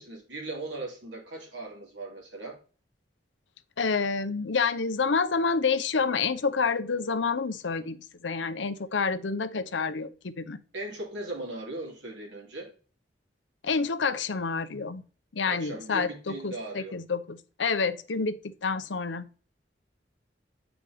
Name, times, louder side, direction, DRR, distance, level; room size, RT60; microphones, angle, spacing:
voice 1, 0.0-2.6 10.7-12.7 15.5-17.0, right 2 dB, 85° right, 2.8 m, -38 dB
voice 2, 3.8-10.6 13.6-15.0 15.3-19.3, left 5 dB, 85° left, 0.7 m, -28 dB
8.4 x 4.9 x 3.5 m
head